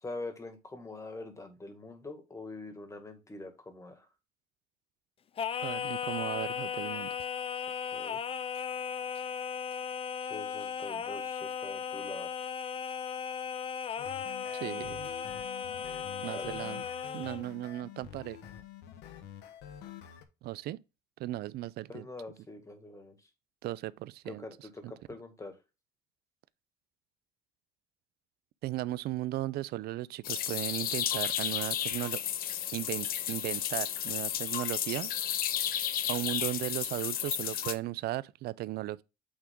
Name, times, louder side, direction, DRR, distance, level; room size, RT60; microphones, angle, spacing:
voice 1, 0.0-4.1 7.9-8.2 10.2-12.3 16.3-16.6 21.9-23.3 24.3-25.6, left 2 dB, 20° left, 1.9 m, -44 dB
Singing, 5.4-17.4, left 7 dB, 35° left, 0.5 m, -36 dB
voice 2, 5.6-7.1 14.5-15.1 16.2-16.8 17.1-18.4 20.4-20.8 21.2-22.1 23.6-24.4 28.6-32.2 32.7-35.1 36.1-39.0, right 16 dB, 70° right, 0.4 m, -36 dB
sound 1, 14.0-20.2, left 10 dB, 85° left, 1.1 m, -48 dB
sound 2, 30.2-37.7, left 10 dB, 60° left, 0.8 m, -33 dB
8.7 x 3.5 x 3.8 m
cardioid pair, 110°, 17 cm